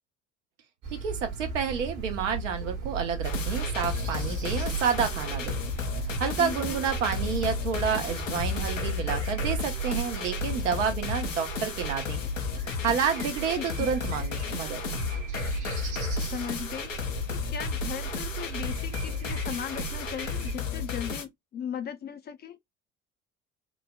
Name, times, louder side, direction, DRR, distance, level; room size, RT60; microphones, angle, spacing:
sound 1, 0.8-20.5, right 5 dB, 50° right, 0.9 m, -35 dB
voice 1, 0.9-5.6 6.2-12.2 12.8-14.8, right 7 dB, 75° right, 0.7 m, -29 dB
sound 2, 3.2-21.2, left 7 dB, 85° left, 0.5 m, -34 dB
voice 2, 6.4-6.8 13.6-13.9 16.3-22.6, left 8 dB, 30° left, 0.4 m, -37 dB
3.1 x 2.0 x 2.2 m
figure-of-eight pair, 55°, 38 cm